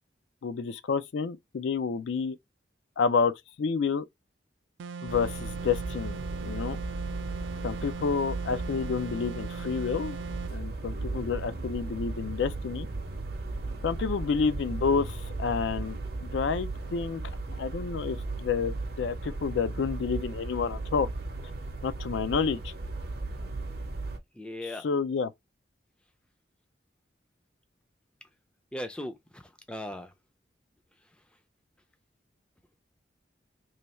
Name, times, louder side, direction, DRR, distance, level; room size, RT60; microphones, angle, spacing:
voice 1, 0.4-2.4 3.0-3.3 3.6-4.0 5.0-6.2 6.4-6.8 7.6-10.2 10.5-12.9 13.8-16.0 16.2-17.2 17.6-21.1 21.8-22.7 24.6-25.3, left 5 dB, 75° left, 0.4 m, -29 dB
sound 1, 4.8-10.6, right 5 dB, 75° right, 0.3 m, -39 dB
sound 2, 5.1-24.2, right 2 dB, 55° right, 0.7 m, -36 dB
voice 2, 24.4-24.9 28.7-30.1, left 1 dB, 5° left, 0.4 m, -38 dB
3.2 x 2.3 x 4.1 m
head